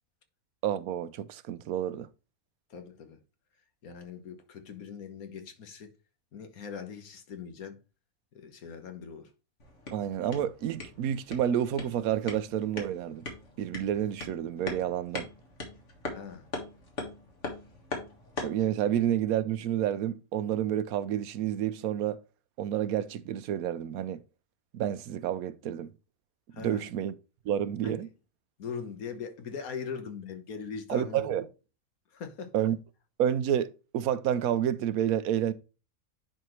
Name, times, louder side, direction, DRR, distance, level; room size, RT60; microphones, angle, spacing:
voice 1, 0.6-2.1 9.9-13.2 13.6-15.3 18.4-22.2 22.6-24.2 24.7-25.9 26.6-27.2 27.5-28.1 30.9-31.5 32.5-32.8 33.2-35.5, right 10 dB, 85° right, 1.1 m, -29 dB
voice 2, 2.7-3.2 3.8-5.9 6.3-7.8 8.3-9.3 16.1-16.5 26.5-26.9 27.8-28.0 28.6-31.5 32.1-32.5, left 6 dB, 85° left, 1.6 m, -41 dB
sound 1, 9.6-18.7, left 3 dB, 55° left, 2.0 m, -41 dB
10.0 x 4.4 x 3.2 m
omnidirectional pair, 1.5 m